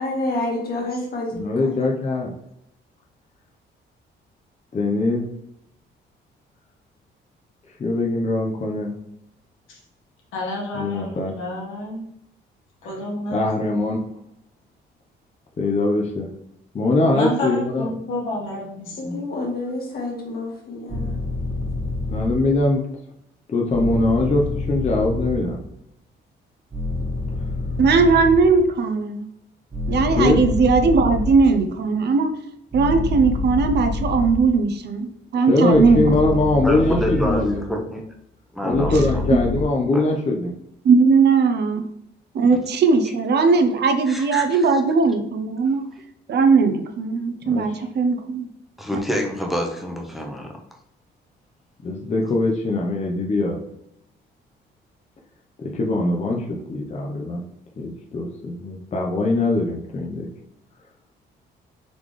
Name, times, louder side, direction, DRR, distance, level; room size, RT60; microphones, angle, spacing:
voice 1, 0.0-1.9 19.0-21.1, left 2 dB, 50° left, 1.6 m, -28 dB
voice 2, 1.3-2.3 4.7-5.3 7.8-8.9 10.7-11.3 13.3-14.0 15.6-16.3 16.7-17.9 22.1-22.8 23.5-25.6 30.2-30.4 35.5-37.6 38.6-40.5 47.4-47.7 51.8-53.6 55.7-57.4 57.8-60.3, left 2 dB, 35° left, 0.7 m, -22 dB
voice 3, 10.3-12.0 12.8-13.5 17.1-19.2, left 1 dB, 90° left, 1.5 m, -29 dB
sound 1, 20.9-22.6 23.7-25.7 26.7-28.7 29.7-31.9 32.7-34.8 35.7-37.7 38.7-39.6, left 2 dB, 25° right, 1.4 m, -27 dB
voice 4, 27.8-29.3 29.9-32.3 32.7-36.2 40.8-41.9 42.3-45.8 46.3-48.5, right 4 dB, 60° right, 0.6 m, -18 dB
voice 5, 36.6-38.0 38.5-39.2 39.9-40.0 44.1-44.6 48.8-50.5, equal, ahead, 0.8 m, -27 dB
4.0 x 3.5 x 3.2 m
cardioid pair, 90°, 20 cm